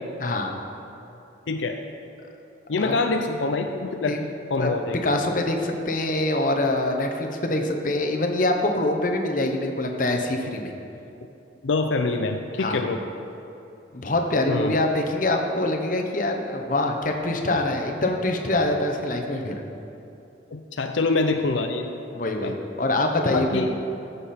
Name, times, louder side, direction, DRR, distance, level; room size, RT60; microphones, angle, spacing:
voice 1, 0.2-0.6 2.8-2.9 4.1-4.3 4.6-4.7 5.0-10.7 12.6-12.8 13.9-19.6 22.1-23.8, left 1 dB, 45° left, 3 dB, 0.9 m, -24 dB
voice 2, 1.5-1.8 2.7-4.2 4.5-5.0 11.6-13.0 14.5-14.8 20.5-21.9 22.4-22.5 23.3-23.7, left 3 dB, 80° left, 5 dB, 0.5 m, -25 dB
14.5 x 7.0 x 4.3 m, 2.9 s
head